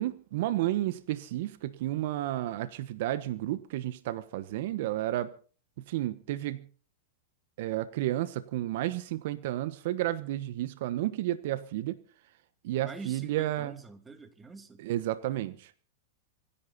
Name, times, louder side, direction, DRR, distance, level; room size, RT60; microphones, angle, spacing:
voice 1, 0.0-5.3 5.9-6.7 7.6-12.0 12.6-13.7 14.8-15.7, right 14 dB, 65° right, 1.2 m, -32 dB
voice 2, 12.8-14.8, right 4 dB, 15° right, 2.6 m, -46 dB
25.5 x 11.0 x 4.2 m
hypercardioid pair, 120°, 0 cm